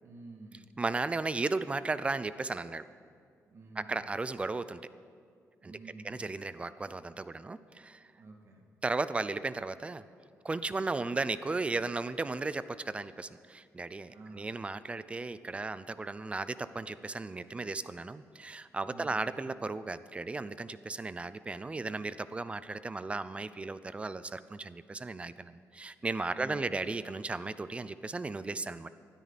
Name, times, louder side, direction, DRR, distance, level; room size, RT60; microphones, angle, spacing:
voice 1, 0.0-0.7 3.5-4.1 5.6-6.3 8.1-8.7 14.1-14.6 18.8-19.3 26.3-26.8, right 3 dB, 50° right, 1 dB, 2.4 m, -50 dB
voice 2, 0.8-2.8 3.8-4.8 5.6-5.7 6.0-8.1 8.8-10.0 10.4-28.9, right 3 dB, 20° right, 15 dB, 0.5 m, -35 dB
19.5 x 13.0 x 4.1 m, 2.2 s
cardioid pair, 115°, 6 cm